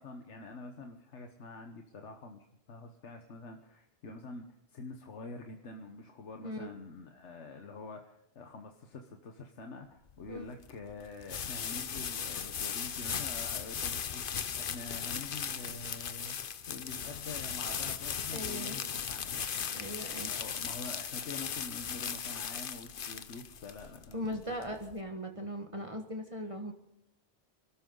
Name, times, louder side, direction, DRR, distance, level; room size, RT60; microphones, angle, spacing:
voice 1, 0.0-16.3 16.7-24.4, left 3 dB, 90° left, 4 dB, 1.5 m, -46 dB
sound 1, 10.1-25.0, left 7 dB, 55° left, 0.9 m, -37 dB
voice 2, 18.3-18.9 19.7-20.3 24.1-26.7, equal, 30° right, 3 dB, 1.6 m, -39 dB
28.0 x 13.0 x 3.9 m, 0.81 s
omnidirectional pair, 1.2 m